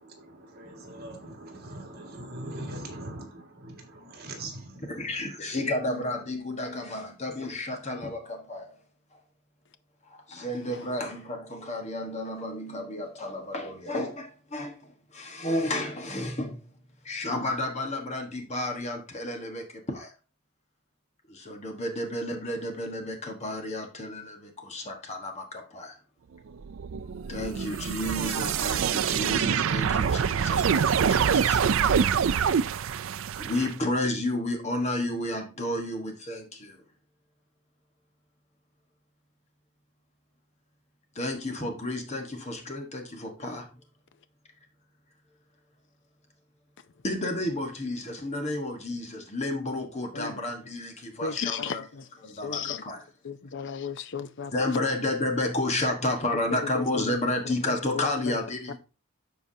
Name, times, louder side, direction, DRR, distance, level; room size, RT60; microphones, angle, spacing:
voice 1, 0.0-5.3, right 1 dB, 45° right, 1.9 m, -41 dB
voice 2, 4.9-8.8 9.1-9.2 10.1-16.6 17.0-20.1 21.3-26.0 27.3-31.8 33.4-36.8 41.1-43.7 47.0-51.8 52.2-53.0 54.5-58.8, left 1 dB, 30° left, 1.3 m, -31 dB
sound 1, 26.6-33.7, right 7 dB, 65° right, 0.4 m, -25 dB
voice 3, 51.2-52.8 53.2-54.7 56.6-57.2 57.9-58.4, left 6 dB, 55° left, 0.6 m, -35 dB
13.0 x 4.6 x 2.7 m
head